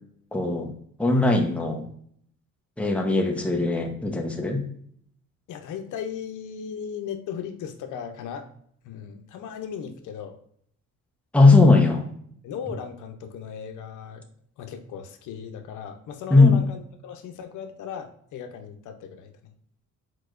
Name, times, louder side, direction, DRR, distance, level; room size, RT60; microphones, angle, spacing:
voice 1, 0.3-0.7 1.0-1.8 2.8-4.6 11.3-12.1 16.3-16.6, left 3 dB, 5° left, 1 dB, 0.9 m, -19 dB
voice 2, 5.5-8.5 8.8-10.4 12.4-14.2 14.6-19.3, left 7 dB, 80° left, 6 dB, 0.7 m, -37 dB
4.7 x 4.5 x 2.5 m, 0.64 s
cardioid pair, 90°, 30 cm